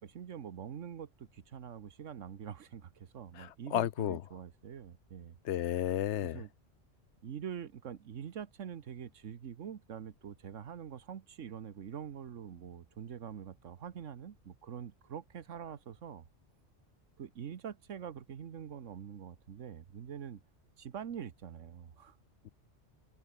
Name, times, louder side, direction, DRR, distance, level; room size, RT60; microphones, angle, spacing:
voice 1, 0.0-5.4 6.2-6.5 7.2-16.2 17.2-20.4 20.8-22.2, right 8 dB, 80° right, 1.4 m, -45 dB
voice 2, 3.4-4.2 5.4-6.4, left 11 dB, 70° left, 1.0 m, -33 dB
omnidirectional pair, 1.3 m